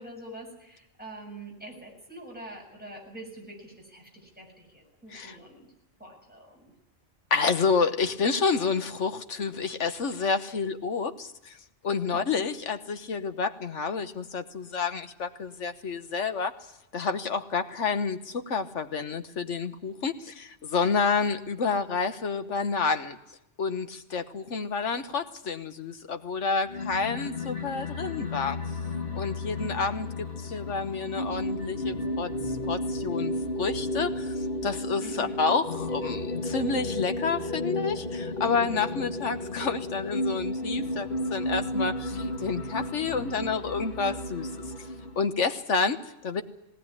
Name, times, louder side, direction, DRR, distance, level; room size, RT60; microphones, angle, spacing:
voice 1, 0.0-5.7 6.0-6.7 7.4-7.5 12.1-12.4 29.6-30.0 35.0-35.4, right 1 dB, 5° right, -1 dB, 7.0 m, -45 dB
voice 2, 7.3-11.6 11.8-16.5 16.9-23.2 23.6-28.6 29.1-44.5 45.2-46.4, left 5 dB, 70° left, 9 dB, 1.5 m, -29 dB
sound 1, 26.7-45.3, left 1 dB, 45° left, 2.1 m, -33 dB
19.5 x 18.5 x 9.8 m, 0.86 s
omnidirectional pair, 1.3 m